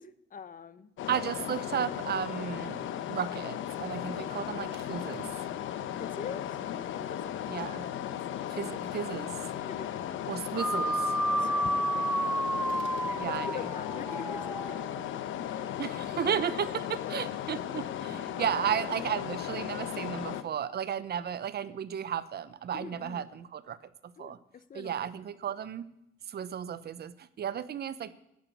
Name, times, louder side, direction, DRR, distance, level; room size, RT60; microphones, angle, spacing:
voice 1, 0.0-0.9 1.2-1.3 4.0-4.3 6.0-6.6 6.9-7.4 8.3-8.6 9.6-10.4 11.4-11.8 13.0-14.8 15.5-15.8 16.2-16.3 16.9-17.1 18.4-18.8 22.7-23.3 24.2-25.1, left 7 dB, 45° left, 14 dB, 0.9 m, -44 dB
sound 1, 1.0-20.4, left 10 dB, 80° left, 0.9 m, -36 dB
voice 2, 1.1-5.3 7.5-7.9 8.5-9.5 10.3-11.2 13.2-13.6 15.8-23.8 24.0-24.4 24.7-25.8 26.3-28.1, right 9 dB, 55° right, 16 dB, 0.8 m, -34 dB
sound 2, 4.7-5.5 12.6-13.2, right 7 dB, 75° right, 1.4 m, -53 dB
sound 3, 10.5-15.1, right 1 dB, 5° right, 0.6 m, -31 dB
11.5 x 8.9 x 8.3 m, 0.82 s
cardioid pair, 90°, 20 cm